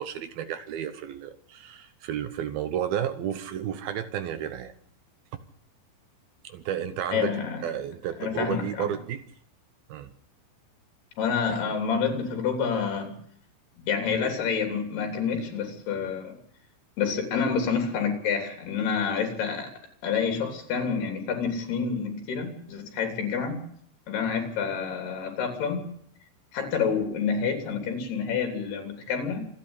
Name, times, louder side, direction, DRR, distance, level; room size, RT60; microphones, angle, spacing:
voice 1, 0.0-4.7 6.4-7.3 7.6-9.2 9.9-10.1, right 9 dB, 70° right, 11 dB, 2.6 m, -32 dB
voice 2, 7.1-7.6 8.2-8.9 11.2-13.2 13.9-16.3 17.0-19.7 20.0-23.6 24.1-25.8 26.5-29.5, left 6 dB, 70° left, 4 dB, 5.3 m, -28 dB
26.5 x 10.0 x 9.8 m, 0.66 s
omnidirectional pair, 4.9 m